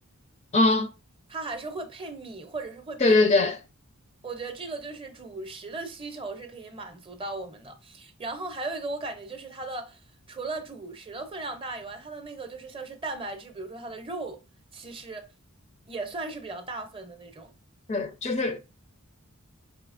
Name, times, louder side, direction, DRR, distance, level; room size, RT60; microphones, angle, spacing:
voice 1, 0.5-0.9 3.0-3.6 17.9-18.6, left 2 dB, 30° left, 0.4 m, -21 dB
voice 2, 1.3-3.2 4.2-10.0 10.3-14.4 14.7-15.3 15.9-17.5, right 3 dB, 25° right, 0.6 m, -37 dB
4.9 x 2.8 x 2.4 m
head